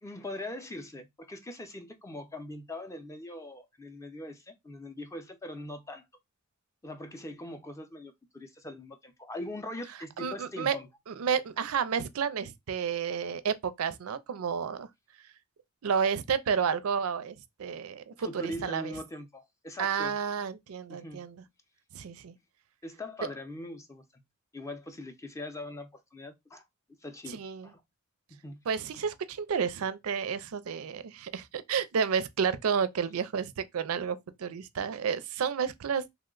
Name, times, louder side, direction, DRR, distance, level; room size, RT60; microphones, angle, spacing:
voice 1, 0.0-6.1 6.8-10.9 18.2-20.2 20.9-21.3 22.8-24.2 24.5-26.6 27.0-27.8 28.3-28.6, left 1 dB, 15° left, 0.5 m, -41 dB
voice 2, 10.2-10.8 11.1-14.9 15.8-18.9 19.8-21.4 21.9-22.3 27.3-27.7 28.7-36.0, right 6 dB, 85° right, 0.4 m, -31 dB
2.9 x 2.1 x 3.7 m
head